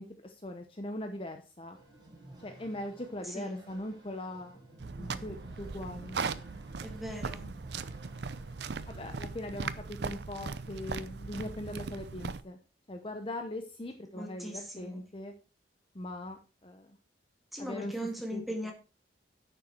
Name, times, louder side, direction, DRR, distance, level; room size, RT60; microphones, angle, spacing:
voice 1, 0.0-1.8 2.4-4.6 5.0-6.2 8.9-12.6 12.9-15.3 15.9-17.0 17.6-17.9 18.3-18.4, left 1 dB, 30° left, 5 dB, 0.8 m, -40 dB
sound 1, 1.7-9.0, right 2 dB, 25° right, 3.7 m, -54 dB
voice 2, 3.2-3.6 6.8-7.5 14.1-15.0 17.5-18.7, equal, ahead, 1 dB, 2.1 m, -39 dB
sound 2, 4.8-12.4, right 4 dB, 65° right, 0.6 m, -39 dB
10.0 x 6.9 x 4.5 m, 0.33 s
head